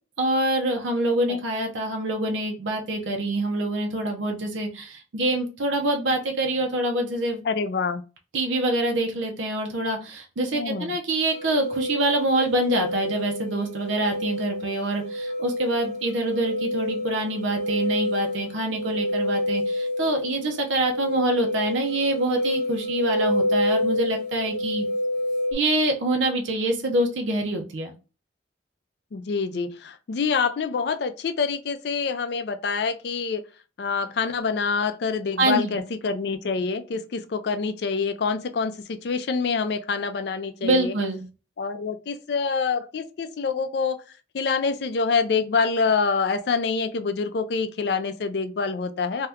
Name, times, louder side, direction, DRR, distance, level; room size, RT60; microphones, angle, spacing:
voice 1, 0.2-7.4 8.3-24.9 25.5-27.9 35.4-35.8 40.6-41.2, right 1 dB, 85° right, 0.6 m, -25 dB
voice 2, 7.4-8.0 10.5-10.9 29.1-33.4 33.8-40.9 41.6-44.0 44.3-49.3, left 5 dB, 60° left, 0.4 m, -26 dB
sound 1, 11.3-25.5, left 1 dB, 40° right, 0.6 m, -28 dB
2.7 x 2.3 x 3.4 m
head